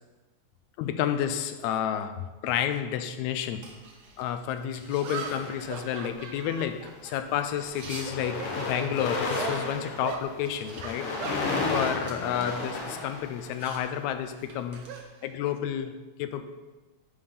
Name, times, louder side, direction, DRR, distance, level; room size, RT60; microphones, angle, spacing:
voice 1, 0.8-3.7 4.2-11.1 11.7-14.9 15.2-16.4, left 9 dB, 80° left, 9 dB, 1.8 m, -30 dB
sound 1, 3.5-15.0, right 3 dB, 55° right, 1.1 m, -51 dB
sound 2, 4.2-4.3 5.0-7.7 8.0-8.9 9.4-9.6 10.0-10.3 10.8-12.5 12.8-13.1 14.3-15.7, right 6 dB, 75° right, 1.6 m, -40 dB
sound 3, 5.1-6.1 6.9-7.1 7.4-13.9, left 3 dB, 60° left, 1.7 m, -33 dB
9.5 x 3.5 x 5.5 m, 1.2 s
omnidirectional pair, 3.3 m